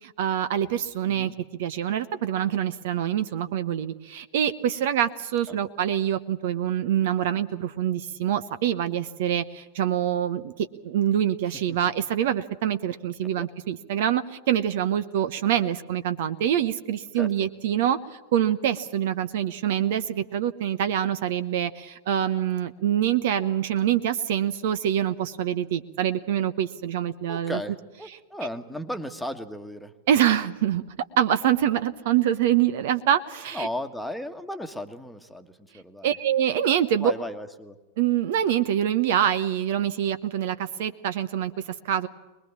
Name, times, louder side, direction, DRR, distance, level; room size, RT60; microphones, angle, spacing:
voice 1, 0.0-27.6 30.1-30.8 31.2-33.7 36.0-37.1 38.0-42.1, right 10 dB, 55° right, 12 dB, 0.9 m, -25 dB
voice 2, 1.0-1.3 11.7-11.8 13.2-13.5 17.2-17.5 27.3-29.9 33.5-36.1 37.0-37.8, left 1 dB, ahead, 8 dB, 1.5 m, -35 dB
24.0 x 21.0 x 7.2 m, 1.1 s
figure-of-eight pair, 90°, 0 cm